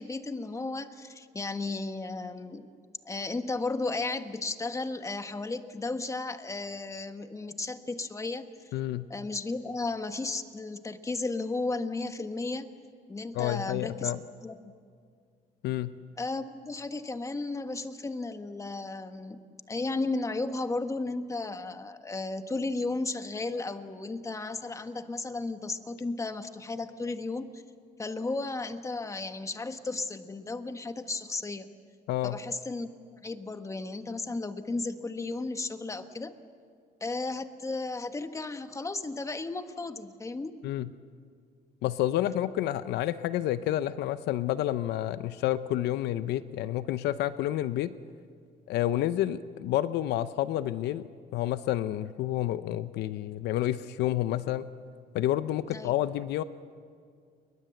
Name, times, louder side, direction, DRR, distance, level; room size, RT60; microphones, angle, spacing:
voice 1, 0.0-2.7 3.0-8.5 9.1-12.7 13.1-14.1 14.4-14.6 16.2-19.4 19.7-27.6 28.0-31.7 32.2-36.3 37.0-40.6 55.7-55.9, left 3 dB, 20° left, 8 dB, 1.5 m, -34 dB
voice 2, 8.7-9.1 13.3-14.2 15.6-15.9 32.1-32.4 40.6-40.9 41.8-47.9 48.7-51.0 51.3-54.6 55.1-56.4, left 13 dB, 80° left, 13 dB, 0.7 m, -29 dB
30.0 x 22.0 x 7.8 m, 2.1 s
cardioid pair, 110°, 17 cm